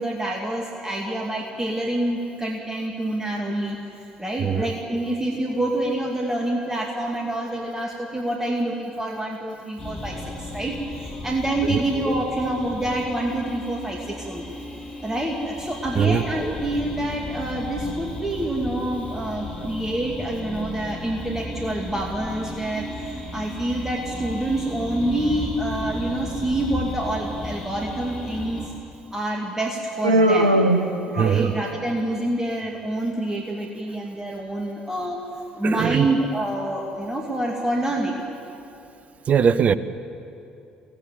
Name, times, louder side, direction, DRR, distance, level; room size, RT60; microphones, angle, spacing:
voice 1, 0.0-3.8 4.2-14.6 15.0-28.7 29.1-30.6 31.1-35.2 35.6-38.2, right 1 dB, 15° right, -1 dB, 2.5 m, -27 dB
sound 1, 9.8-28.7, left 1 dB, 25° left, 5.3 m, -34 dB
Human voice, 30.0-31.7, right 1 dB, 80° right, 1.0 m, -20 dB
voice 2, 31.2-31.5 35.6-36.1 39.3-39.8, right 7 dB, 40° right, 15 dB, 0.8 m, -20 dB
24.5 x 16.5 x 7.6 m, 2.7 s
figure-of-eight pair, 55°, 4 cm